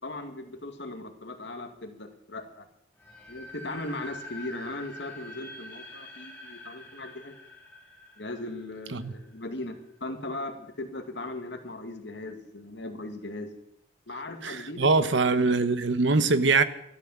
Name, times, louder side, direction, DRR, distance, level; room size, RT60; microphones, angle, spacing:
voice 1, 0.0-2.6 3.3-7.4 8.2-13.5 14.1-15.3, left 2 dB, 70° left, 2.3 m, -38 dB
sound 1, 3.0-9.9, left 1 dB, 10° left, 3.1 m, -46 dB
voice 2, 14.4-16.6, right 3 dB, 80° right, 1.1 m, -23 dB
13.5 x 12.5 x 7.4 m
head